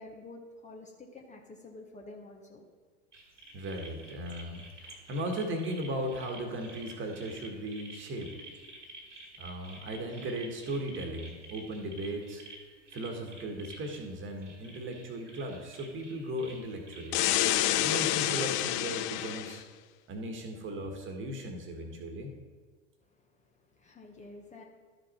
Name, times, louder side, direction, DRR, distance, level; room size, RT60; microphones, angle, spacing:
voice 1, 0.0-2.6 23.1-24.6, left 2 dB, 20° left, 1 dB, 1.1 m, -49 dB
sound 1, 3.1-18.8, right 2 dB, 85° right, 2.1 m, -51 dB
voice 2, 3.5-8.5 9.4-12.4 12.9-17.2 17.8-19.6 20.1-22.3, right 1 dB, 35° right, 3 dB, 1.6 m, -37 dB
sound 2, 17.1-19.6, left 14 dB, 40° left, 0.4 m, -28 dB
12.0 x 5.1 x 4.3 m, 1.5 s
figure-of-eight pair, 85°, 35 cm